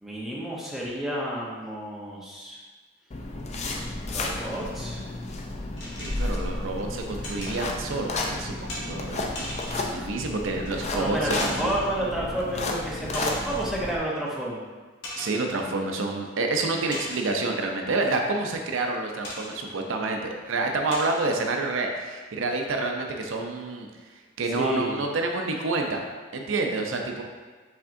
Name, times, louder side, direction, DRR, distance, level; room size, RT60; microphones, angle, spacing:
voice 1, 0.0-2.6 4.0-5.0 10.9-14.6 24.5-25.0, right 1 dB, ahead, -6 dB, 0.7 m, -30 dB
sound 1, 3.1-14.0, left 2 dB, 35° left, 0.4 m, -32 dB
sound 2, 5.8-6.5 7.2-7.6 8.7-8.9 9.4-9.9 10.7-10.8 11.3-11.9 13.1-13.8 14.3-14.4 15.0-15.4 16.9-17.5 19.2-19.6 20.2-20.3 20.9-21.3, left 1 dB, 60° left, 1.4 m, -38 dB
voice 2, 6.0-11.7 15.2-26.0 26.3-27.2, right 3 dB, 75° right, 3 dB, 0.5 m, -28 dB
5.7 x 3.6 x 2.6 m, 1.4 s
head